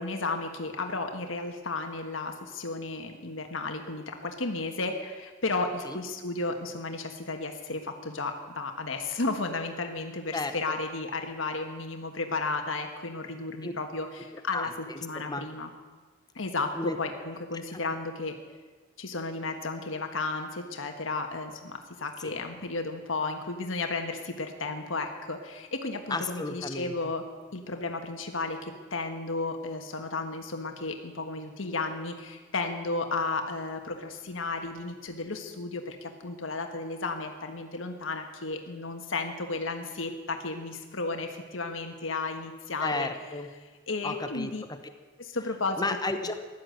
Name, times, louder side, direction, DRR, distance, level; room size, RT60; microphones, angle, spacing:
voice 1, 0.0-14.7 15.0-15.7 16.3-18.4 19.0-27.2 27.5-43.1 43.9-44.6 45.2-45.9 46.2-46.3, left 3 dB, 90° left, 5 dB, 1.5 m, -33 dB
voice 2, 10.3-10.8 13.6-13.7 14.5-15.5 16.7-17.0 22.2-22.4 26.1-27.1 42.8-43.5 44.0-44.8 45.8-46.3, left 3 dB, 20° left, 7 dB, 1.1 m, -33 dB
15.5 x 11.5 x 7.8 m, 1.4 s
head